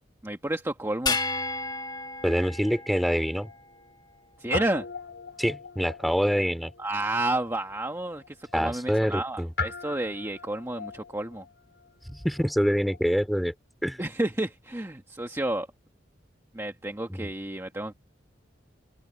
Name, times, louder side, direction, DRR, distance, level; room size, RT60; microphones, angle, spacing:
voice 1, 0.2-1.2 4.4-4.9 6.8-11.4 14.0-15.7 16.5-17.9, right 1 dB, 15° right, 1.3 m, -30 dB
sound 1, 1.1-3.6, left 3 dB, 25° left, 1.4 m, -32 dB
voice 2, 2.2-3.5 5.4-6.7 8.5-9.5 12.2-13.5 13.8-14.0 17.1-17.3, equal, ahead, 2.7 m, -25 dB
Guitar, 2.4-4.2 4.5-13.2, left 4 dB, 75° left, 4.2 m, -41 dB
open air
head